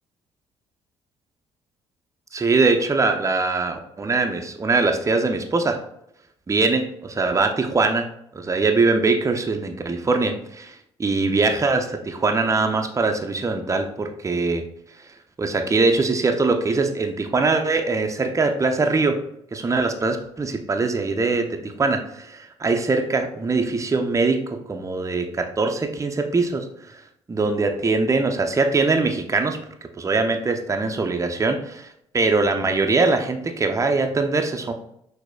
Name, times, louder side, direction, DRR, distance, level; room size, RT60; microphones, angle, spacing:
voice 1, 2.3-5.8 6.5-8.1 8.3-14.6 15.4-19.2 19.5-27.0 27.3-29.6 30.0-34.7, right 3 dB, 20° right, 5 dB, 0.6 m, -22 dB
5.9 x 2.7 x 2.2 m, 0.74 s
figure-of-eight pair, 45°, 15 cm